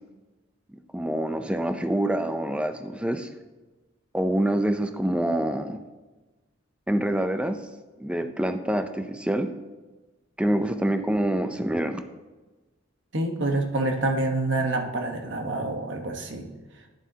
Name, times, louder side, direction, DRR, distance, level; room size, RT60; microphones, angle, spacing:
voice 1, 0.7-3.3 4.1-5.8 6.9-7.6 8.0-9.5 10.4-12.0, right 1 dB, 5° right, 8 dB, 0.4 m, -26 dB
voice 2, 13.1-16.5, right 2 dB, 65° right, 3 dB, 1.1 m, -27 dB
11.0 x 9.7 x 2.8 m, 1.2 s
head